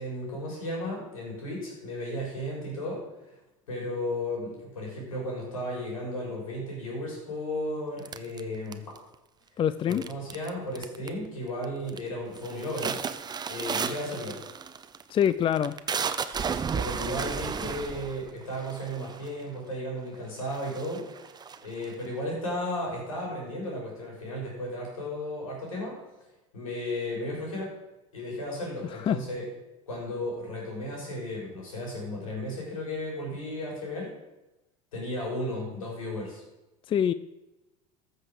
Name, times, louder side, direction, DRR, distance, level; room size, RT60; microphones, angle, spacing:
voice 1, 0.0-3.0 3.7-8.8 9.9-13.0 13.5-14.4 16.7-26.0 26.5-27.7 28.1-29.4 29.9-34.1 34.9-36.4, left 1 dB, 85° left, -2 dB, 4.4 m, -34 dB
sound 1, 8.1-9.2 9.9-10.5 10.8-11.3 11.6-12.0 12.4-19.4 20.1-20.2 20.5-22.1, right 6 dB, 25° right, 0.7 m, -33 dB
voice 2, 9.6-10.0 15.1-15.8 29.1-29.2 36.9-37.1, left 9 dB, 30° left, 15 dB, 0.4 m, -24 dB
14.5 x 6.6 x 5.0 m, 1.0 s
hypercardioid pair, 80°, 17 cm